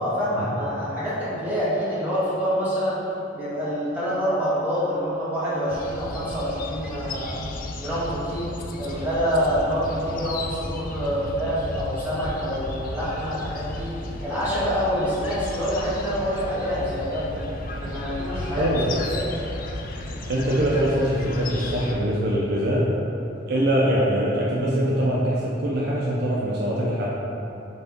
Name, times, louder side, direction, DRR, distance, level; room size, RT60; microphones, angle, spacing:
voice 1, 0.0-3.0 3.3-7.4 7.8-8.5 8.8-13.9 14.2-17.5 17.8-18.7 19.0-19.5, equal, 10° right, -12 dB, 1.4 m, -26 dB
sound 1, 5.7-21.9, left 2 dB, 50° left, 0.4 m, -34 dB
voice 2, 18.6-18.9 20.3-22.9 23.5-27.1, right 1 dB, 60° right, -5 dB, 0.5 m, -23 dB
4.1 x 3.4 x 3.5 m, 3.0 s
head